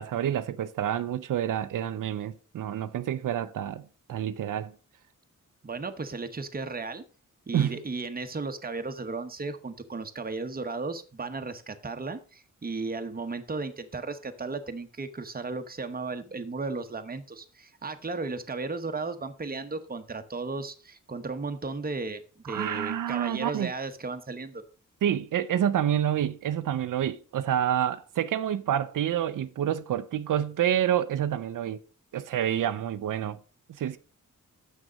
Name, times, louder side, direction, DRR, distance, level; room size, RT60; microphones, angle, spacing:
voice 1, 0.0-3.8 4.1-4.7 7.5-7.8 22.5-23.7 25.0-31.8 32.1-33.4 33.8-34.0, right 10 dB, 85° right, 0.5 m, -28 dB
voice 2, 5.6-7.0 7.5-24.6, right 3 dB, 30° right, 1.0 m, -35 dB
7.4 x 6.3 x 5.0 m
wide cardioid pair, 115°, 31 cm